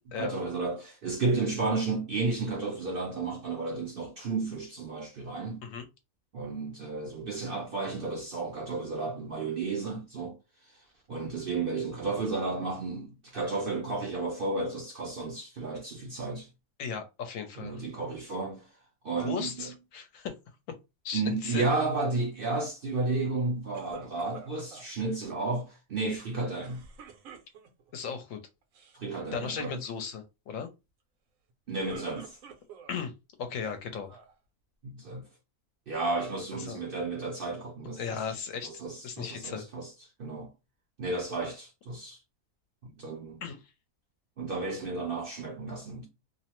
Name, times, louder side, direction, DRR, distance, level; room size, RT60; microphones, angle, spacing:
voice 1, 0.1-5.7 6.3-10.4 11.1-16.5 17.6-18.7 19.0-19.7 21.1-26.8 28.9-29.8 31.7-32.4 34.8-35.2 35.9-38.2 38.6-39.9 40.2-40.5 41.0-42.2 42.8-43.4 44.4-46.1, right 3 dB, 60° right, 0.6 m, -32 dB
voice 2, 16.8-17.8 19.2-20.3 21.0-21.6 27.9-28.4 29.1-30.7 32.9-33.1 33.4-34.2 36.6-36.8 38.0-39.7 43.4-43.6, left 6 dB, 75° left, 0.9 m, -36 dB
sound 1, 23.7-24.9 26.6-27.9 28.6-29.0 29.3-29.7 31.5-33.0 33.6-34.4, right 6 dB, 75° right, 1.1 m, -49 dB
2.7 x 2.0 x 2.9 m
omnidirectional pair, 1.5 m